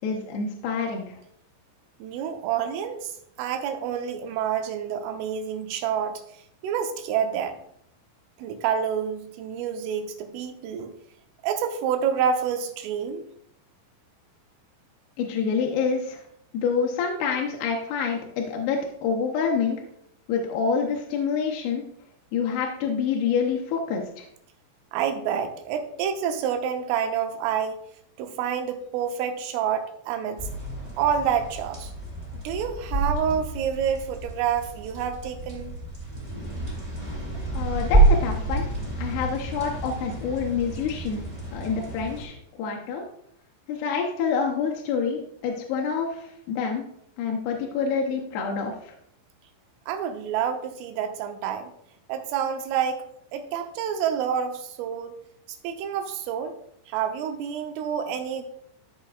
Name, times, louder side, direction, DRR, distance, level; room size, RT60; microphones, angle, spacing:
voice 1, 0.0-1.2 15.2-16.2 16.5-19.8 20.3-21.8 22.3-24.3 37.5-38.7 39.0-41.2 41.5-43.0 43.7-46.8 47.2-49.0, left 6 dB, 80° left, 0 dB, 2.4 m, -27 dB
voice 2, 2.0-6.2 6.6-7.6 8.4-10.9 11.4-13.2 24.9-27.8 28.2-30.5 31.0-31.9 32.3-35.7 49.9-51.7 52.1-53.1 53.3-55.2 55.6-56.6 56.9-58.4, right 8 dB, 90° right, 5 dB, 3.4 m, -28 dB
sound 1, 30.4-42.2, right 2 dB, 10° right, 1.8 m, -28 dB
13.5 x 5.8 x 2.4 m, 0.71 s
omnidirectional pair, 5.6 m